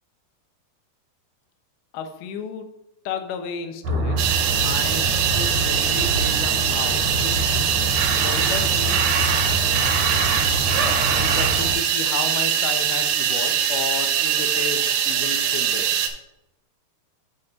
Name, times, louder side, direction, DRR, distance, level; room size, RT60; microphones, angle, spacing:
voice 1, 1.9-2.7 3.1-4.3 4.6-7.4 8.1-9.1 11.1-16.0, left 6 dB, 80° left, 6 dB, 1.9 m, -33 dB
sound 1, 3.8-11.7, right 2 dB, 65° right, 2.2 m, -25 dB
sound 2, 4.2-16.1, right 9 dB, 85° right, 2.7 m, -22 dB
12.5 x 5.0 x 2.9 m, 0.89 s
omnidirectional pair, 4.6 m